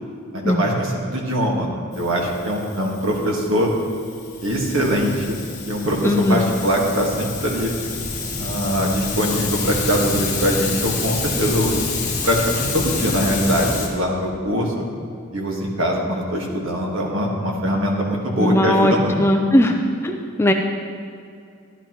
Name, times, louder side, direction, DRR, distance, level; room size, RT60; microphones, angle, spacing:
voice 1, 0.3-1.7 1.9-3.7 4.4-5.4 5.6-7.7 8.4-11.8 12.2-14.9 15.3-19.2, equal, 65° right, -1 dB, 1.6 m, -22 dB
Hiss, 1.9-13.9, left 3 dB, 35° left, 1.7 m, -28 dB
voice 2, 6.0-6.5 18.4-18.9 19.2-19.8 20.0-20.5, left 1 dB, 10° left, 4 dB, 0.4 m, -18 dB
12.0 x 11.0 x 3.0 m, 2.4 s
head